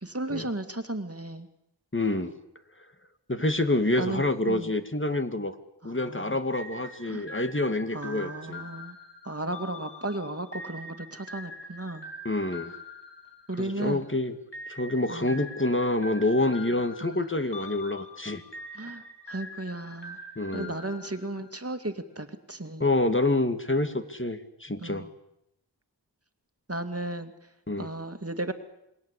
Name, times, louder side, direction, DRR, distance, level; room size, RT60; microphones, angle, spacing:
voice 1, 0.0-1.5 4.0-4.2 4.5-4.7 5.8-6.4 7.1-7.3 7.9-9.0 9.2-12.1 13.5-14.0 15.1-15.4 17.0-17.2 18.7-20.2 20.5-22.9 24.8-25.1 26.7-27.5 27.8-28.5, right 2 dB, 35° right, 9 dB, 2.5 m, -35 dB
voice 2, 1.9-2.3 3.3-5.5 5.8-8.6 12.2-12.7 13.6-14.3 14.7-18.4 20.4-20.7 22.8-25.1 27.7-27.9, left 2 dB, 30° left, 9 dB, 2.5 m, -27 dB
sound 1, 6.5-14.0 14.5-21.8, left 1 dB, 75° left, 3.6 m, -44 dB
27.5 x 21.5 x 8.5 m, 0.82 s
wide cardioid pair, 45°, 42 cm